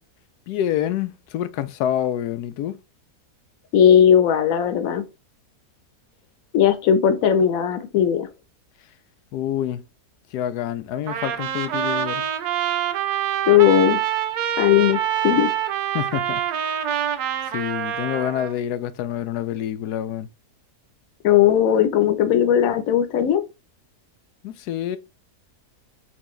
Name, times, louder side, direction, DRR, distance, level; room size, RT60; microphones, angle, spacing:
voice 1, 0.5-2.8 9.3-9.8 10.3-12.3 15.9-16.7 17.5-20.3 24.4-25.0, left 11 dB, 90° left, 1.1 m, -27 dB
voice 2, 3.7-5.0 6.5-8.3 13.5-14.0 14.6-15.5 21.2-23.4, left 9 dB, 65° left, 1.1 m, -17 dB
Trumpet, 11.1-18.5, right 10 dB, 90° right, 1.2 m, -25 dB
4.4 x 3.7 x 3.1 m
omnidirectional pair, 1.6 m